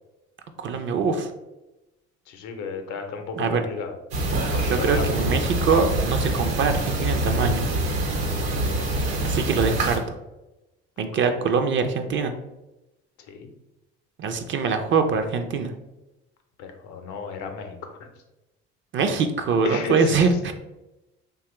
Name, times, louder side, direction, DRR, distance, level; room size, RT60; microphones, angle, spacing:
voice 1, 0.6-1.3 3.4-3.6 4.6-7.6 9.2-10.0 11.0-12.3 14.2-15.7 18.9-20.5, right 5 dB, 40° right, 7 dB, 0.4 m, -23 dB
voice 2, 2.3-3.9 4.5-5.0 8.6-9.3 11.2-11.4 13.3-13.5 16.6-18.1 19.6-20.2, left 4 dB, 75° left, 6 dB, 0.6 m, -34 dB
sound 1, 4.1-10.0, right 1 dB, 80° right, 0.9 m, -25 dB
3.0 x 2.3 x 2.9 m, 0.98 s
hypercardioid pair, 70°, 30 cm